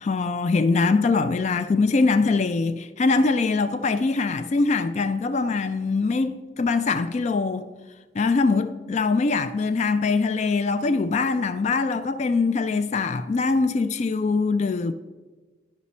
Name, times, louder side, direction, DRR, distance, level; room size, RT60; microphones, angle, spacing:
voice 1, 0.0-7.7 8.2-14.9, left 4 dB, 35° left, 0.3 m, -23 dB
11.5 x 5.1 x 4.2 m
head